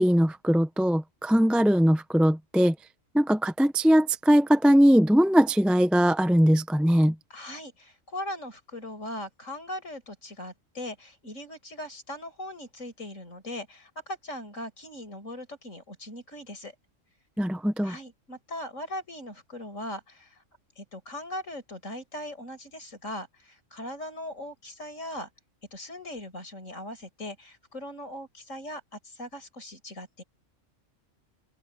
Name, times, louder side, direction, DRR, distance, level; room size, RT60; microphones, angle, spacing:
voice 1, 0.0-2.7 3.1-7.1 17.4-17.9, equal, ahead, 0.7 m, -21 dB
voice 2, 7.3-16.7 17.8-20.4 20.8-25.3 25.7-30.2, left 1 dB, 75° left, 6.3 m, -39 dB
open air
omnidirectional pair, 1.3 m